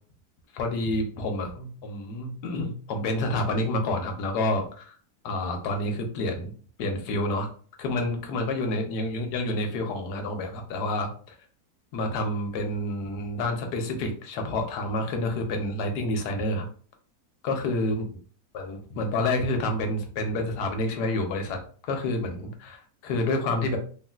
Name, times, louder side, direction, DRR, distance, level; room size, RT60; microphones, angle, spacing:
voice 1, 0.5-5.0 5.2-6.5 6.8-7.5 7.8-11.3 11.9-16.7 17.4-18.0 18.5-23.8, left 2 dB, 75° left, 4 dB, 1.1 m, -28 dB
3.2 x 2.4 x 2.3 m, 0.43 s
omnidirectional pair, 1.9 m